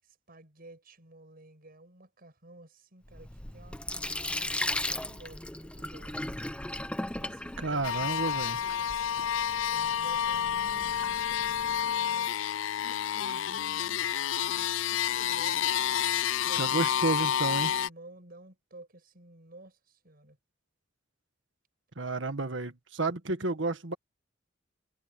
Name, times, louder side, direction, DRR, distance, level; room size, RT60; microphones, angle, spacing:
voice 1, 0.0-6.3 7.1-9.3 9.7-12.3 12.8-15.9 16.4-17.1 17.4-20.4, right 1 dB, 50° right, 7.2 m, -53 dB
Sink (filling or washing), 3.1-11.9, left 1 dB, 5° left, 0.6 m, -38 dB
voice 2, 7.6-8.6 16.6-17.7 21.9-23.9, right 3 dB, 70° right, 1.8 m, -31 dB
sound 1, 7.8-17.9, left 9 dB, 85° left, 0.4 m, -29 dB
head